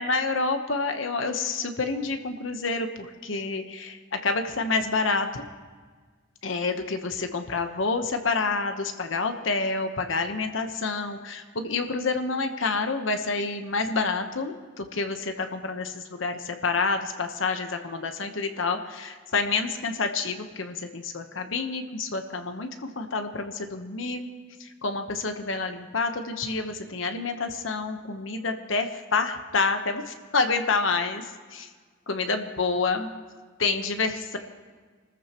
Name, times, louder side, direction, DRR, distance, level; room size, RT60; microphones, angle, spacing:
voice 1, 0.0-5.4 6.4-24.3 24.6-31.7 32.1-33.1 33.6-34.4, left 4 dB, 80° left, 6 dB, 1.1 m, -28 dB
26.0 x 14.0 x 3.0 m, 1.5 s
head